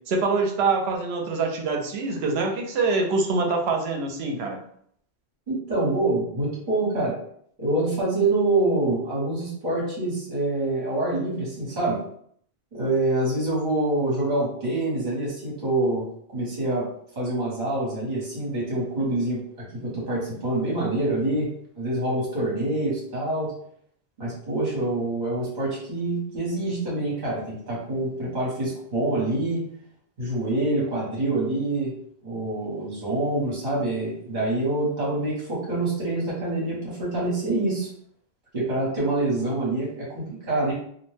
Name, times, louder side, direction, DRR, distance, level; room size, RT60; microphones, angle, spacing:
voice 1, 0.1-4.6, right 3 dB, 75° right, 3 dB, 0.8 m, -25 dB
voice 2, 5.5-7.1 7.6-12.0 12.7-16.1 16.3-16.9 17.2-21.5 21.8-23.5 24.2-29.6 30.2-31.9 32.2-37.9 38.5-40.7, right 2 dB, 50° right, -6 dB, 1.1 m, -26 dB
2.4 x 2.1 x 3.1 m, 0.65 s
omnidirectional pair, 1.1 m